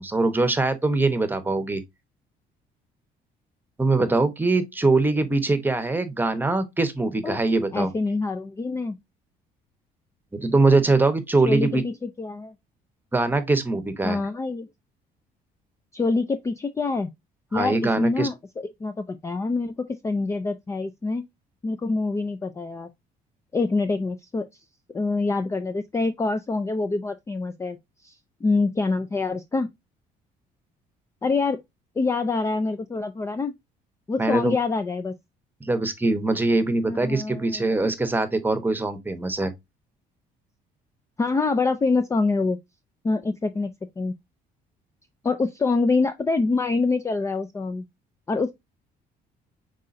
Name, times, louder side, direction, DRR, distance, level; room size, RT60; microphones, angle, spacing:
voice 1, 0.0-1.8 3.8-7.9 10.3-11.8 13.1-14.2 17.5-18.3 34.2-34.5 35.6-39.5, right 3 dB, 10° right, 0.9 m, -22 dB
voice 2, 7.7-9.0 11.4-12.5 14.0-14.7 15.9-17.1 17.5-21.2 21.6-22.9 23.5-24.5 24.9-27.8 28.0-28.1 28.4-29.7 31.2-31.6 32.0-33.5 34.1-35.1 36.8-37.8 41.2-42.6 43.0-44.1 45.2-47.8 48.3-48.5, left 3 dB, 15° left, 0.4 m, -25 dB
5.4 x 3.8 x 2.5 m
cardioid pair, 110°, 17 cm